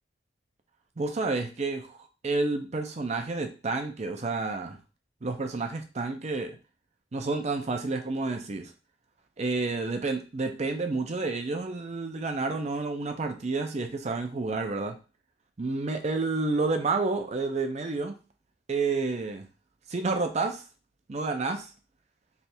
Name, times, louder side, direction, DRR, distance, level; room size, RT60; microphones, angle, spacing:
voice 1, 1.0-2.0 2.2-4.8 5.2-6.6 7.1-8.7 9.4-15.0 15.6-18.2 18.7-19.5 19.9-20.6 21.1-21.7, right 3 dB, 40° right, 5 dB, 0.5 m, -30 dB
3.3 x 2.4 x 4.3 m, 0.32 s
head